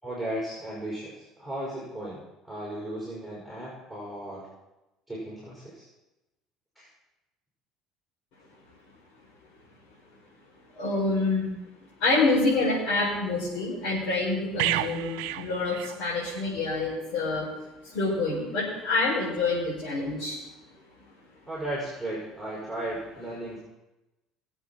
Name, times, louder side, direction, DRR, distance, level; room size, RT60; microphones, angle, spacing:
voice 1, 0.0-4.5 5.1-5.8 6.8-6.9 21.5-23.6, right 1 dB, 5° left, -7 dB, 5.7 m, -35 dB
voice 2, 10.7-11.5 12.0-17.5 17.8-20.4, left 3 dB, 70° left, -8 dB, 5.2 m, -27 dB
sound 1, 14.6-16.5 16.8-17.0, right 14 dB, 90° right, 0.6 m, -31 dB
20.0 x 8.0 x 4.4 m, 0.98 s
supercardioid pair, 110°, 0 cm